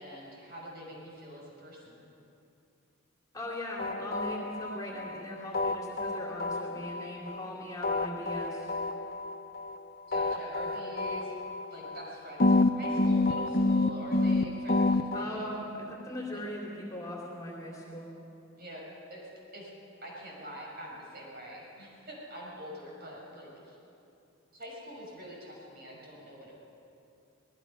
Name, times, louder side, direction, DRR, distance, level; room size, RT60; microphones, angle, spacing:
voice 1, 0.0-2.0 10.1-11.4 11.7-15.5 16.2-16.4 18.6-19.7 20.0-23.8 24.5-26.6, right 1 dB, 45° right, -3 dB, 6.3 m, -45 dB
voice 2, 3.3-8.7 15.1-18.1, equal, 15° left, -2 dB, 3.0 m, -39 dB
sound 1, 3.8-5.2 5.5-7.5 7.8-9.8 10.1-12.1 12.4-15.2, left 2 dB, 45° left, 0.8 m, -29 dB
25.5 x 19.5 x 5.6 m, 2.7 s
head